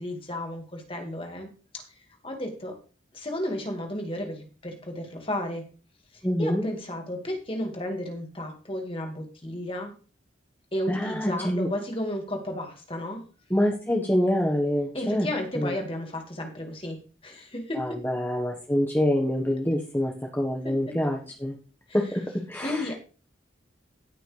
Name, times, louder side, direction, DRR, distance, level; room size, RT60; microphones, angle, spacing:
voice 1, 0.0-1.8 2.2-2.8 3.1-5.7 6.1-9.9 10.7-13.2 14.9-18.0 20.6-21.0 22.6-22.9, left 1 dB, 30° left, 3 dB, 2.1 m, -33 dB
voice 2, 6.2-6.7 10.9-11.7 13.5-15.3 15.5-15.7 17.7-21.5 21.9-22.2 22.5-22.9, equal, 10° left, 0 dB, 1.4 m, -26 dB
17.5 x 6.2 x 3.4 m, 0.36 s
head